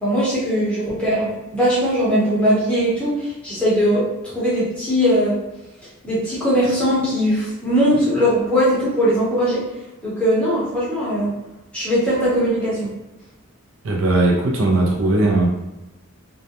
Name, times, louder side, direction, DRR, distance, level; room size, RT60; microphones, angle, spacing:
voice 1, 0.0-5.3 6.0-9.7 10.0-11.3 11.7-12.9, equal, 5° left, -9 dB, 0.7 m, -20 dB
voice 2, 13.8-15.5, right 2 dB, 60° right, -1 dB, 0.5 m, -18 dB
2.3 x 2.1 x 2.8 m, 0.99 s
head